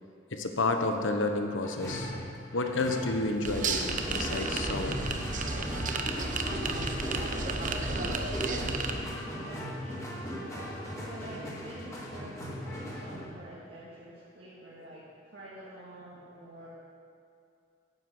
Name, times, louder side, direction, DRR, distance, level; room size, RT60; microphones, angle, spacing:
voice 1, 0.3-2.1 2.5-5.2, left 2 dB, 90° left, 5 dB, 1.1 m, -30 dB
sound 1, 1.6-13.2, equal, 15° left, 2.4 m, -38 dB
sound 2, 3.4-8.9, right 3 dB, 45° right, 0.8 m, -32 dB
voice 2, 6.9-16.7, right 1 dB, 60° right, -8 dB, 2.3 m, -48 dB
9.7 x 7.8 x 8.3 m, 2.5 s
head